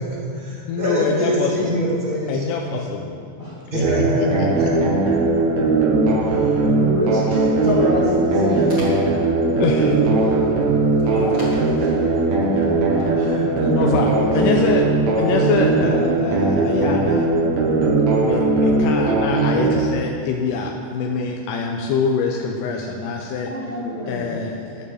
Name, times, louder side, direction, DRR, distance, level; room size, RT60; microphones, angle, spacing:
voice 1, 0.0-2.7 3.7-4.7 5.1-5.2, right 1 dB, 15° right, -5 dB, 1.9 m, -24 dB
voice 2, 0.7-1.8 2.3-3.2 3.7-4.3 9.6-10.0 11.0-11.5 13.6-14.9 15.2-17.3 18.2-23.5 24.1-24.9, left 5 dB, 85° left, 1 dB, 2.3 m, -24 dB
sound 1, 3.8-19.8, right 3 dB, 65° right, 2.1 m, -19 dB
voice 3, 6.2-9.3 10.5-10.7 11.0-11.3 11.8-14.6 15.0-15.2 23.4-24.6, left 1 dB, 35° left, -9 dB, 1.9 m, -28 dB
12.5 x 6.6 x 7.1 m, 2.4 s
omnidirectional pair, 3.7 m